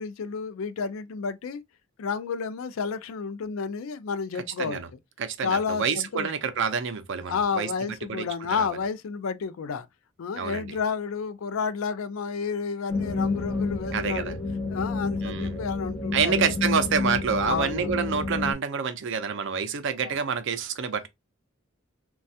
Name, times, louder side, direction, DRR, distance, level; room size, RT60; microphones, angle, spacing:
voice 1, 0.0-1.6 2.0-4.8 5.4-6.3 7.3-9.9 10.2-14.4 14.7-16.4 17.4-18.0 20.0-20.1, left 5 dB, 80° left, 0.4 m, -31 dB
voice 2, 5.2-7.7 8.1-8.3 8.6-8.7 10.4-10.8 13.9-14.3 15.2-15.6 16.1-21.1, right 6 dB, 60° right, 0.5 m, -27 dB
sound 1, 12.9-18.5, left 3 dB, 10° left, 0.9 m, -29 dB
3.2 x 2.3 x 2.7 m
head